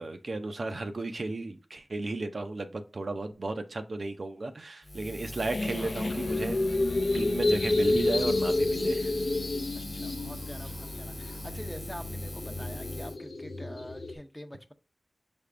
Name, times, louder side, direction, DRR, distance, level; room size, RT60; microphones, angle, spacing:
voice 1, 0.0-6.6 7.1-9.1, right 2 dB, 65° right, 0.5 m, -34 dB
Buzz, 4.8-13.2, left 1 dB, 25° left, 1.2 m, -42 dB
sound 1, 5.5-14.1, left 2 dB, 70° left, 0.5 m, -30 dB
voice 2, 9.9-14.7, equal, 10° left, 0.6 m, -45 dB
5.5 x 3.4 x 2.5 m
cardioid pair, 45°, 0 cm